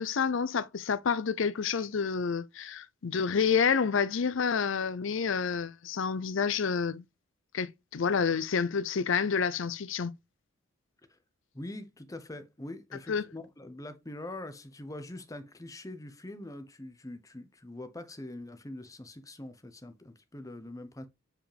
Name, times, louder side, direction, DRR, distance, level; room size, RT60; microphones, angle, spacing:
voice 1, 0.0-7.0 7.5-10.1 13.1-13.2, left 6 dB, 60° left, 0.5 m, -29 dB
voice 2, 11.5-21.1, left 1 dB, 15° left, 0.8 m, -43 dB
7.6 x 4.9 x 3.3 m
head